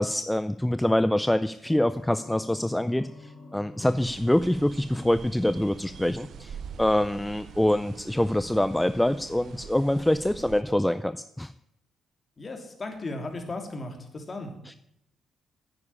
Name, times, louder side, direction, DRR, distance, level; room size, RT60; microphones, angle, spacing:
voice 1, 0.0-11.5, left 1 dB, 5° left, 13 dB, 0.5 m, -25 dB
sound 1, 1.6-10.7, left 4 dB, 55° left, 3.9 m, -52 dB
sound 2, 3.8-10.6, right 7 dB, 65° right, 0.6 m, -45 dB
voice 2, 12.4-14.5, left 2 dB, 30° left, 4 dB, 3.2 m, -36 dB
9.8 x 9.8 x 9.9 m, 0.80 s
cardioid pair, 90°, 0 cm